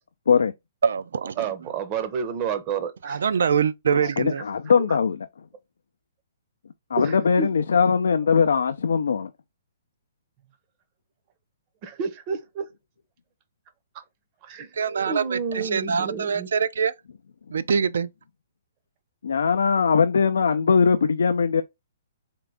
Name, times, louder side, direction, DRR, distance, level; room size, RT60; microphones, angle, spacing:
voice 1, 0.8-1.4 3.0-4.4 14.8-16.9 17.5-18.1, right 6 dB, 80° right, 0.4 m, -24 dB
voice 2, 1.4-3.2 4.9-5.0 7.0-7.5 11.8-12.7 14.4-14.7 15.1-16.5, right 6 dB, 30° right, 0.6 m, -30 dB
voice 3, 4.2-5.2 6.9-9.3 19.2-21.6, left 6 dB, 85° left, 0.3 m, -20 dB
3.7 x 2.5 x 3.3 m
hypercardioid pair, 160°, 0 cm